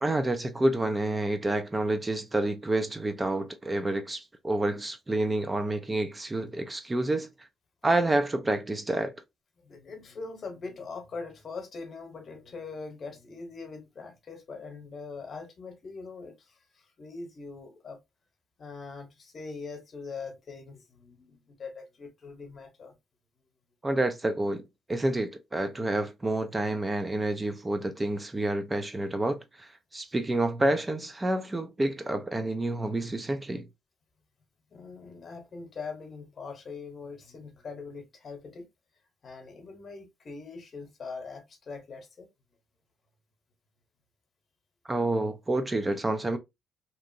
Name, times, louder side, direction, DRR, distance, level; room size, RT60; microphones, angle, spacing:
voice 1, 0.0-7.3 7.8-9.1 23.8-33.6 44.9-46.4, right 2 dB, 20° right, 0.4 m, -28 dB
voice 2, 9.6-16.5 17.0-18.0 18.6-22.9 34.7-38.7 39.2-42.3, left 4 dB, 50° left, 1.0 m, -42 dB
2.9 x 2.4 x 2.5 m
cardioid pair, 90°, 0 cm